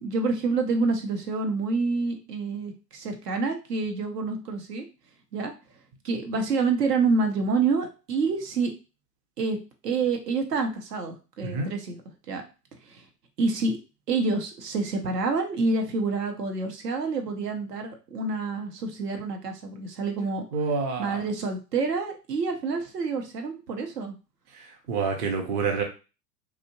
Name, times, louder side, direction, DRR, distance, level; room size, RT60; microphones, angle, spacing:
voice 1, 0.0-4.8 5.3-5.5 6.0-8.7 9.4-9.6 9.8-12.0 12.3-12.4 12.8-13.0 13.4-13.7 14.1-20.4 21.0-24.2, right 4 dB, 70° right, 4 dB, 0.7 m, -27 dB
voice 2, 20.5-21.2 24.9-25.8, right 5 dB, 30° right, 2 dB, 0.6 m, -27 dB
2.7 x 2.0 x 2.8 m, 0.31 s
figure-of-eight pair, 95°, 50 cm